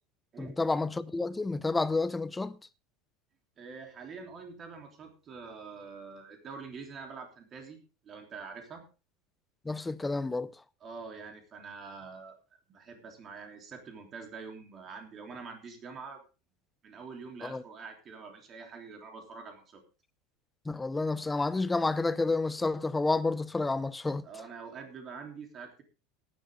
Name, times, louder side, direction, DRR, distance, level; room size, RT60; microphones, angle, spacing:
voice 1, 0.4-2.6 9.7-10.5 17.4-17.6 20.7-24.3, left 3 dB, 10° left, 0.5 m, -30 dB
voice 2, 3.6-7.8 8.0-8.8 10.8-12.4 12.7-16.2 16.8-19.8 24.2-25.8, right 5 dB, 25° right, 3.3 m, -45 dB
15.0 x 11.0 x 3.7 m
supercardioid pair, 165°, 0 cm